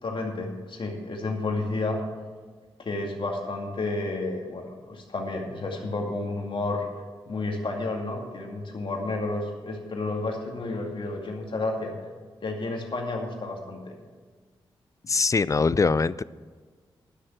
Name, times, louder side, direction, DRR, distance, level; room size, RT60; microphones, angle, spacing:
voice 1, 0.0-2.0 2.8-6.9 7.3-11.9 12.4-13.9, left 2 dB, 55° left, 1 dB, 2.4 m, -31 dB
voice 2, 15.1-16.2, left 4 dB, 35° left, 19 dB, 0.4 m, -22 dB
11.5 x 6.6 x 7.9 m, 1.5 s
supercardioid pair, 45°, 10 cm